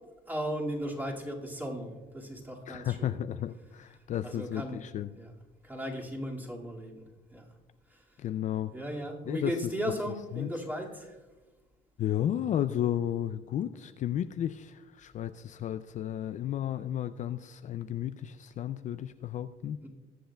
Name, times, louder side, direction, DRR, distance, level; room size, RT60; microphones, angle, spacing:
voice 1, 0.3-3.2 4.2-4.8 5.1-5.3 5.6-7.0 7.3-7.4 7.9-8.0 8.7-11.2 19.8-19.9, equal, 10° right, -2 dB, 2.2 m, -36 dB
voice 2, 2.7-5.1 8.2-8.7 9.3-9.7 10.3-10.5 12.0-19.8, left 11 dB, 45° left, 11 dB, 0.4 m, -33 dB
20.5 x 7.8 x 2.3 m, 1.2 s
cardioid pair, 110°, 17 cm